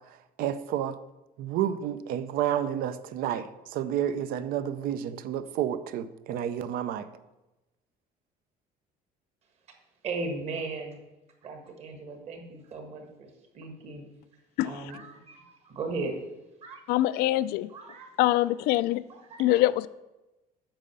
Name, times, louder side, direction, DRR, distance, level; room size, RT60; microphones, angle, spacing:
voice 1, 0.4-1.0 1.4-7.1, right 10 dB, 65° right, 13 dB, 0.6 m, -30 dB
voice 2, 10.0-11.0 11.4-14.1 14.6-16.2 16.6-16.8 17.7-18.1 19.1-19.6, right 3 dB, 40° right, 4 dB, 1.7 m, -37 dB
voice 3, 16.9-17.7 18.2-19.0 19.4-19.9, left 15 dB, 75° left, 17 dB, 0.4 m, -24 dB
8.9 x 5.5 x 6.8 m, 1.0 s
cardioid pair, 170°, 16 cm